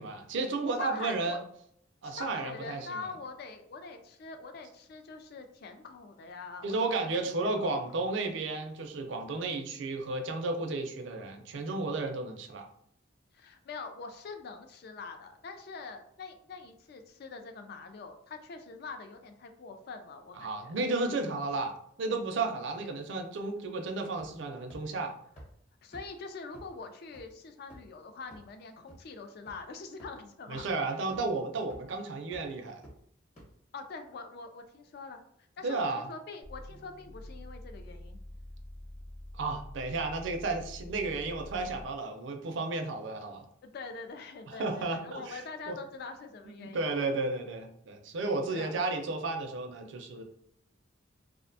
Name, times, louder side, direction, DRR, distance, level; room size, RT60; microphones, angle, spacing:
voice 1, 0.0-1.4 2.0-3.1 6.6-12.7 20.3-25.1 30.5-32.8 35.6-36.1 39.3-43.5 44.5-45.4 45.7-45.8 46.5-50.2, right 3 dB, 65° right, 5 dB, 0.4 m, -33 dB
voice 2, 0.8-1.4 2.0-7.1 7.4-7.7 13.3-20.8 25.8-30.6 33.7-35.2 35.6-38.2 43.6-46.9 48.5-48.8, left 4 dB, 50° left, 6 dB, 0.3 m, -44 dB
sound 1, 24.2-24.4 24.7-24.8 25.4-25.5 25.9-26.0 26.5-26.6 27.1-27.2 27.7-27.9 28.3-28.4 28.9-29.0 29.5-29.6 30.0-30.1 30.5-30.6 31.1-31.2 31.7-31.9 32.3-32.4 32.8-32.9 33.4-33.5, equal, 35° left, 1.0 m, -49 dB
sound 2, 36.4-42.0, left 1 dB, 80° left, 0.9 m, -46 dB
2.5 x 2.1 x 2.6 m, 0.70 s
head